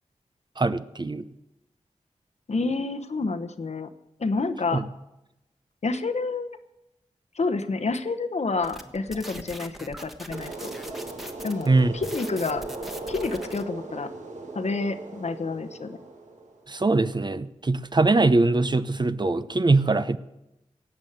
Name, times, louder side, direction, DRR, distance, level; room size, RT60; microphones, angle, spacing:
voice 1, 0.6-1.3 4.7-4.8 11.7-11.9 16.7-20.2, right 3 dB, 35° right, 13 dB, 0.7 m, -22 dB
voice 2, 2.5-3.9 4.2-4.8 5.8-6.6 7.3-10.5 11.4-12.6 13.1-14.1 14.5-16.0, left 3 dB, 65° left, 9 dB, 1.0 m, -29 dB
sound 1, 8.6-13.6, equal, ahead, 1.3 m, -42 dB
sound 2, 10.3-16.7, right 2 dB, 75° right, 1.8 m, -38 dB
17.5 x 7.1 x 8.0 m, 0.92 s
cardioid pair, 50°, 12 cm